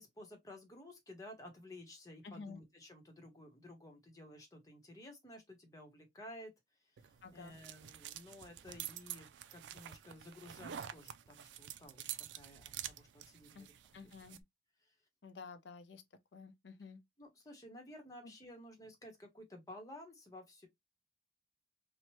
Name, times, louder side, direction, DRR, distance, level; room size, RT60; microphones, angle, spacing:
voice 1, 0.0-6.5 6.8-13.7 14.3-14.4 14.8-14.9 17.2-20.7, left 1 dB, 20° left, 0.9 m, -54 dB
voice 2, 2.2-2.6 7.2-7.5 13.5-13.7 13.9-14.4 15.2-16.0 16.3-17.0 18.2-18.3, left 4 dB, 85° left, 0.5 m, -51 dB
sound 1, 7.0-14.4, right 11 dB, 85° right, 0.3 m, -48 dB
2.9 x 2.1 x 3.0 m
head